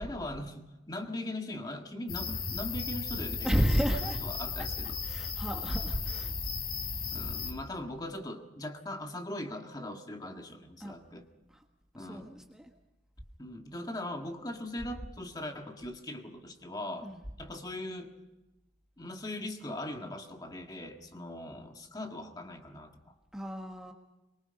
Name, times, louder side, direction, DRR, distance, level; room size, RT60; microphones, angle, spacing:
voice 1, 0.0-5.0 7.1-11.3 11.9-12.3 13.4-17.1 17.4-18.2 19.0-23.2, left 1 dB, 20° left, 4 dB, 1.8 m, -40 dB
sound 1, 2.1-7.5, left 4 dB, 60° left, 4.7 m, -36 dB
voice 2, 3.4-4.2 5.0-6.3 10.8-10.9 11.5-11.6 12.0-12.7 17.0-17.2 23.3-23.9, equal, 5° right, 1 dB, 1.4 m, -32 dB
23.5 x 23.0 x 5.3 m, 1.0 s
head